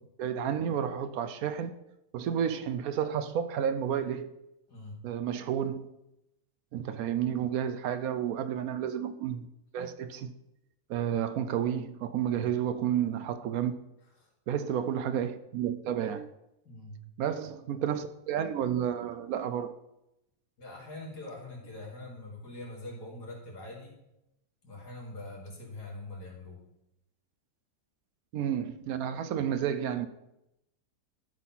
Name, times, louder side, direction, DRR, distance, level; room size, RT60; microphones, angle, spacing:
voice 1, 0.2-1.7 2.1-4.3 5.0-5.9 6.7-9.5 9.7-10.3 10.9-13.7 14.5-16.3 17.2-19.7 28.3-30.1, right 9 dB, 70° right, 1.0 m, -31 dB
voice 2, 4.7-5.0 12.3-12.6 14.2-14.3 16.6-17.0 20.6-24.0 24.6-26.6, left 2 dB, 85° left, 3.0 m, -43 dB
12.0 x 4.1 x 5.7 m
omnidirectional pair, 1.7 m